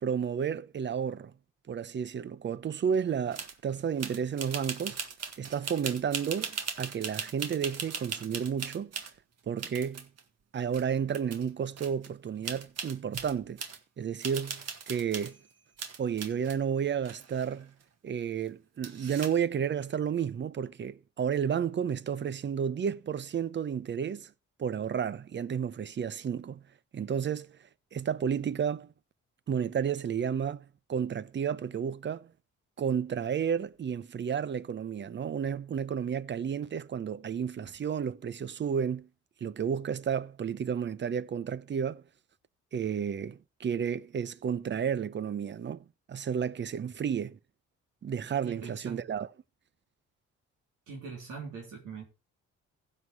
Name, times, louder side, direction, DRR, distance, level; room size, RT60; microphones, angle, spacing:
voice 1, 0.0-1.3 1.7-5.0 5.4-8.9 9.5-10.1 10.5-13.6 14.0-15.4 16.0-17.7 18.0-24.3 24.6-26.6 26.9-27.6 27.9-28.9 29.5-32.3 32.8-39.1 39.4-42.0 42.7-47.4 48.0-49.3, right 7 dB, 40° right, 0.7 m, -32 dB
sound 1, 3.3-3.6 4.0-9.1 9.6-10.2 10.7-10.8 11.1-11.5 11.8-12.1 12.4-13.8 14.2-15.4 15.8-16.6 17.0-17.8 18.8-19.4, right 6 dB, 55° right, 1.7 m, -39 dB
voice 2, 48.4-49.1 50.9-52.0, right 5 dB, 80° right, 3.5 m, -42 dB
15.5 x 6.3 x 4.7 m
cardioid pair, 90°, 30 cm